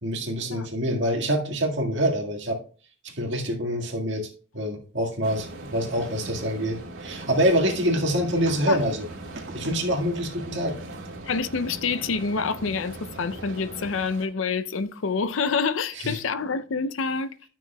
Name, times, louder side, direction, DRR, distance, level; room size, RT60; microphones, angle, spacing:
voice 1, 0.0-2.6 3.0-9.1 9.4-10.8 15.9-16.2, equal, 60° right, 1.8 m, -26 dB
sound 1, 5.2-14.3, right 2 dB, 80° right, 2.1 m, -40 dB
voice 2, 11.3-17.3, left 4 dB, 80° left, 0.6 m, -27 dB
12.5 x 6.1 x 2.3 m
head